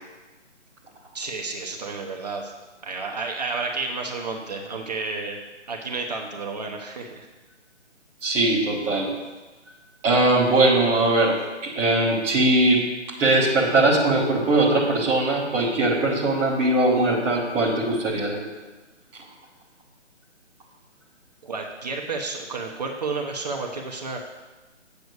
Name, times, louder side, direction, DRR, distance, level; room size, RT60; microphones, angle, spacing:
voice 1, 1.1-2.5 2.8-5.4 5.7-7.3 21.4-24.2, right 3 dB, 35° right, 1 dB, 0.8 m, -31 dB
voice 2, 8.2-9.1 10.0-11.4 11.6-12.8 13.2-18.4, right 2 dB, 5° right, -7 dB, 0.9 m, -20 dB
8.1 x 6.1 x 6.7 m, 1.2 s
figure-of-eight pair, 145°, 36 cm